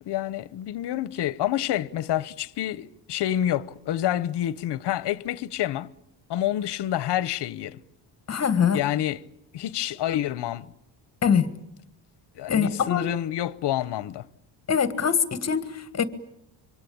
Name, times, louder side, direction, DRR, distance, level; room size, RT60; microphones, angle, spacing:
voice 1, 0.0-5.9 6.3-7.8 8.7-9.2 9.5-10.7 12.3-14.3, left 12 dB, 60° left, 1.0 m, -28 dB
voice 2, 8.3-8.8 11.2-11.5 12.5-13.0 14.7-16.0, left 7 dB, 35° left, 1.6 m, -23 dB
26.5 x 24.0 x 8.6 m
cardioid pair, 170°, 46 cm